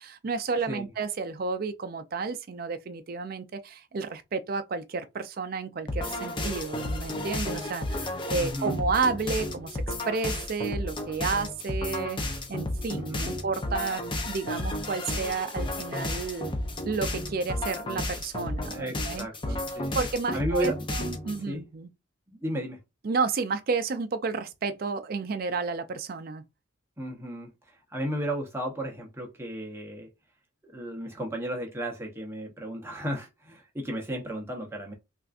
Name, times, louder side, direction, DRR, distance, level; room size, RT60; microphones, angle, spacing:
voice 1, 0.0-12.2 12.5-16.5 16.9-19.3 19.9-21.9 23.0-26.4, right 4 dB, 45° right, 0.4 m, -31 dB
sound 1, 5.9-21.4, left 1 dB, 25° left, 0.5 m, -32 dB
voice 2, 8.4-8.7 12.9-13.3 18.7-20.0 20.3-20.9 21.2-21.6 22.3-22.8 27.0-27.5 27.9-30.1 30.6-34.9, equal, 10° right, 0.7 m, -34 dB
3.5 x 2.5 x 2.4 m
head